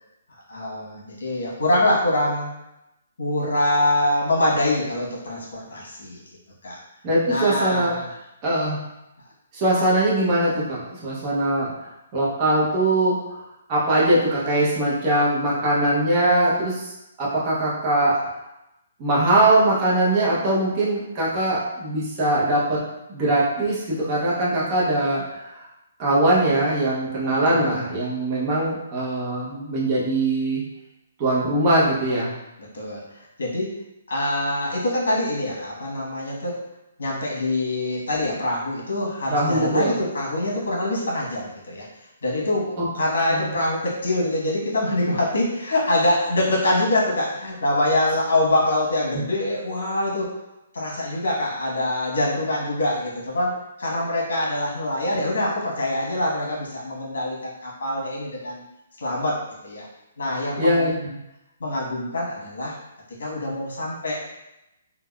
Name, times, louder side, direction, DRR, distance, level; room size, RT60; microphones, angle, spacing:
voice 1, 0.5-2.5 3.2-6.2 6.6-6.8 7.3-8.0 27.5-27.8 32.7-33.0 33.4-33.7 34.1-36.5 37.0-41.8 42.2-50.3 50.7-53.5 53.8-58.6 59.0-59.9 60.2-61.1 61.6-62.7 63.2-64.3, left 1 dB, 75° left, -3 dB, 1.1 m, -24 dB
voice 2, 7.0-7.9 8.4-8.8 9.5-11.7 12.1-13.4 13.7-16.9 17.2-18.2 19.0-22.8 23.1-25.7 26.0-30.6 31.2-32.3 39.3-40.0 42.8-42.9 43.3-43.5 49.1-49.2 60.6-60.9, right 1 dB, 20° right, -6 dB, 0.6 m, -21 dB
3.5 x 2.1 x 2.2 m, 0.90 s
hypercardioid pair, 175°, 0 cm